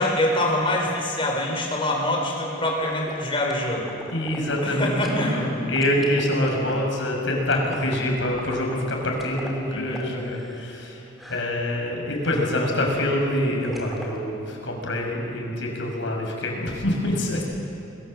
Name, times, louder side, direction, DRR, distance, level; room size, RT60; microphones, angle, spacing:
voice 1, 0.0-3.9 4.6-5.5 9.7-10.0, left 1 dB, 25° left, 0 dB, 5.0 m, -25 dB
sound 1, 2.7-5.3 5.7-10.9 11.2-11.6 12.2-12.8 13.7-14.1, equal, ahead, 3.3 m, -40 dB
voice 2, 4.1-11.0 11.3-17.4, left 1 dB, 65° left, 0 dB, 5.8 m, -25 dB
28.0 x 21.5 x 7.6 m, 2.7 s
head